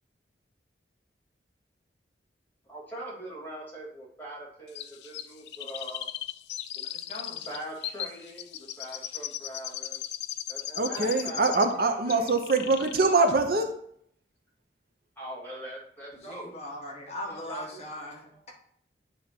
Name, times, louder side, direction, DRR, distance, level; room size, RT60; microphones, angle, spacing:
voice 1, 2.7-6.1 7.4-10.0 10.5-12.3 15.2-16.6 17.3-18.1, right 1 dB, 10° left, -5 dB, 2.5 m, -42 dB
Chirp tweet, 4.8-11.8 12.1-13.0 13.3-13.4, left 12 dB, 70° left, 0.4 m, -37 dB
voice 2, 6.8-7.4 16.1-18.5, left 1 dB, 40° left, -2 dB, 1.5 m, -40 dB
voice 3, 10.8-13.7, right 3 dB, 55° right, 6 dB, 0.7 m, -24 dB
9.3 x 3.6 x 4.4 m, 0.66 s
head